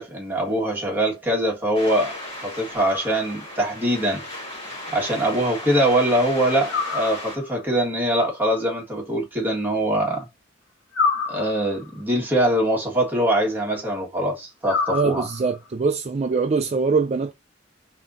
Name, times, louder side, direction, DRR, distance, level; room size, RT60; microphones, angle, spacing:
voice 1, 0.0-4.2 4.9-10.3 11.3-15.3, right 1 dB, 10° right, 1.7 m, -23 dB
sound 1, 1.7-7.4, left 1 dB, 30° left, 2.2 m, -36 dB
sound 2, 2.8-3.6 6.7-7.7 10.9-12.0 14.7-15.7, left 4 dB, 70° left, 2.1 m, -28 dB
voice 2, 14.9-17.3, right 4 dB, 35° right, 0.4 m, -23 dB
4.0 x 3.8 x 2.7 m
head